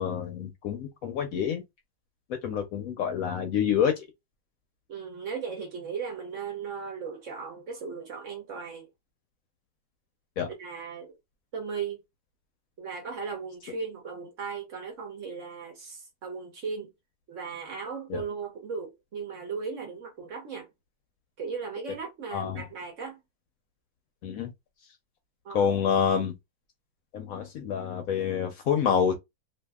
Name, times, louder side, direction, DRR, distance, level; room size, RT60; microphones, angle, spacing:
voice 1, 0.0-1.6 2.4-3.9 10.4-10.5 18.1-18.2 22.3-22.6 24.2-24.5 25.5-26.3 27.1-29.1, left 7 dB, 70° left, 0.9 m, -27 dB
voice 2, 4.9-8.9 10.6-11.1 11.5-12.0 12.8-16.9 17.3-20.7 21.4-23.2 25.4-25.7, right 5 dB, 55° right, 0.9 m, -37 dB
2.7 x 2.5 x 2.2 m
omnidirectional pair, 1.8 m